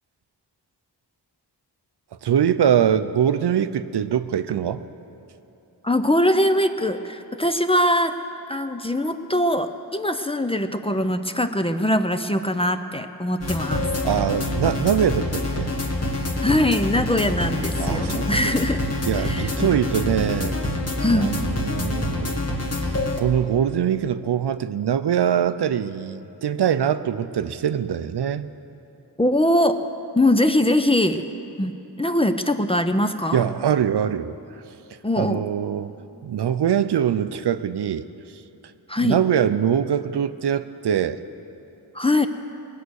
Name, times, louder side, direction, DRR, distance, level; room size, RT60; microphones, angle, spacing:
voice 1, 2.2-4.8 14.0-15.7 17.8-18.5 19.1-20.6 21.1-22.4 22.8-28.5 33.3-34.3 35.2-35.9 36.2-38.1 39.0-41.2, right 9 dB, 75° right, 12 dB, 0.6 m, -23 dB
voice 2, 5.8-8.1 8.5-13.9 16.4-18.8 19.2-19.7 21.0-21.3 29.2-29.8 30.1-31.2 31.6-33.4 35.0-35.4 38.9-39.2 41.9-42.3, left 1 dB, 15° left, 8 dB, 0.5 m, -22 dB
sound 1, 13.4-23.2, left 2 dB, 40° left, 1.4 m, -26 dB
21.0 x 8.2 x 6.4 m, 2.9 s
wide cardioid pair, 95°, 41 cm